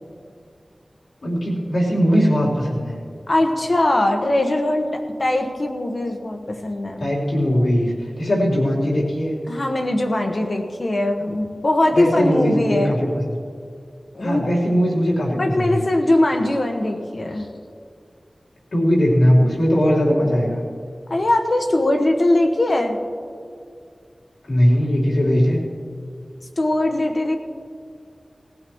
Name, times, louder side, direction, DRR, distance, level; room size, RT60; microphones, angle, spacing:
voice 1, 1.2-2.9 7.0-9.3 11.9-13.1 14.2-15.8 18.7-20.6 24.4-25.6, equal, 80° left, -6 dB, 4.0 m, -19 dB
voice 2, 3.3-7.1 9.5-12.9 14.1-14.5 15.3-17.5 21.1-23.0 26.6-27.4, left 1 dB, 55° left, 3 dB, 1.4 m, -21 dB
20.0 x 15.5 x 3.2 m, 2.3 s
wide cardioid pair, 65°, 0 cm